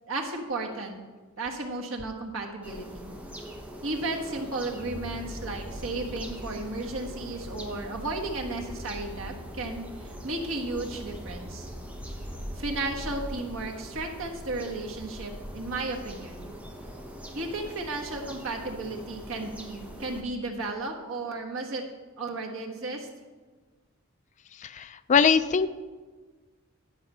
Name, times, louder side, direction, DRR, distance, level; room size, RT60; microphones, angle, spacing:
voice 1, 0.1-1.0 1.4-3.1 3.8-11.7 12.6-16.5 17.3-21.8 22.2-23.1, right 2 dB, 75° right, 1 dB, 1.4 m, -34 dB
sound 1, 2.6-20.2, right 1 dB, 5° right, 1.0 m, -44 dB
sound 2, 4.8-20.6, equal, 15° left, 2.0 m, -44 dB
voice 2, 24.6-25.7, left 6 dB, 35° left, 13 dB, 0.4 m, -22 dB
11.0 x 5.7 x 5.5 m, 1.3 s
head